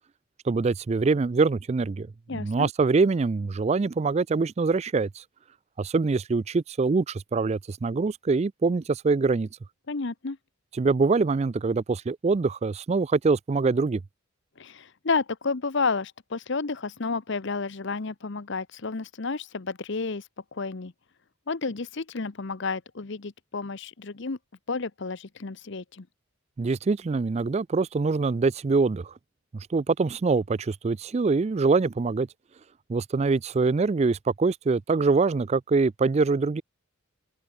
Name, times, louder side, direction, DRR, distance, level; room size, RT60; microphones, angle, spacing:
voice 1, 0.5-2.1 2.3-5.2 5.8-9.5 10.8-14.0 26.6-29.1 29.5-32.3 32.9-36.6, right 4 dB, 30° right, 0.3 m, -24 dB
voice 2, 2.3-2.7 9.9-10.4 14.6-20.2 20.5-20.9 21.5-24.4 24.7-26.1, left 4 dB, 55° left, 0.8 m, -31 dB
open air
head